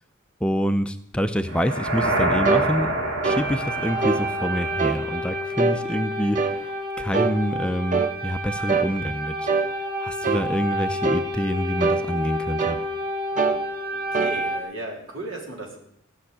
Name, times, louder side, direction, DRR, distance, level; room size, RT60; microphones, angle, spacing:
voice 1, 0.4-2.9 3.2-9.5 10.0-12.8, equal, 5° left, 9 dB, 0.6 m, -26 dB
sound 1, 1.5-5.6, right 1 dB, 90° right, 2.9 m, -27 dB
sound 2, 2.5-2.7 3.2-3.5 4.0-4.3 4.8-5.0 5.6-5.8 6.4-6.6 7.1-7.4 7.9-8.1 8.7-8.9 9.5-9.7 10.2-10.5 11.0-11.3 11.8-12.1 12.6-12.9 13.4-13.6 14.1-14.4, right 4 dB, 40° right, 0.7 m, -23 dB
sound 3, 3.3-14.6, equal, 25° right, 3.1 m, -30 dB
voice 2, 13.8-15.8, right 2 dB, 75° right, 1 dB, 3.7 m, -36 dB
16.0 x 6.5 x 9.8 m, 0.74 s
head